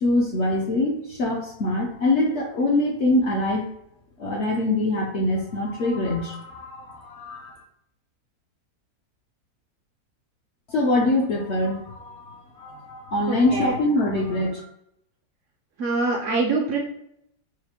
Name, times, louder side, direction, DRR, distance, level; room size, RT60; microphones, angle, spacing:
voice 1, 0.0-3.7 4.2-7.6 10.7-14.6, left 2 dB, 65° left, -1 dB, 0.7 m, -24 dB
voice 2, 13.3-13.8 15.8-16.8, right 3 dB, 70° right, 1 dB, 0.7 m, -24 dB
4.8 x 2.0 x 2.8 m, 0.77 s
omnidirectional pair, 1.6 m